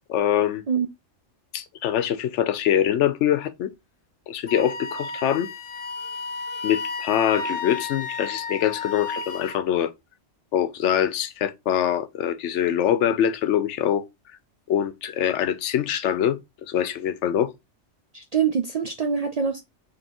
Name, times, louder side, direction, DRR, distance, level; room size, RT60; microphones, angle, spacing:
voice 1, 0.1-0.6 1.5-3.7 4.3-5.5 6.6-9.9 10.5-14.0 14.7-17.5, left 10 dB, 85° left, 0.9 m, -24 dB
Wind instrument woodwind instrument, 4.5-9.6, left 4 dB, 55° left, 0.8 m, -33 dB
voice 2, 18.1-19.6, right 7 dB, 60° right, 0.4 m, -24 dB
5.3 x 3.2 x 2.9 m
omnidirectional pair, 1.2 m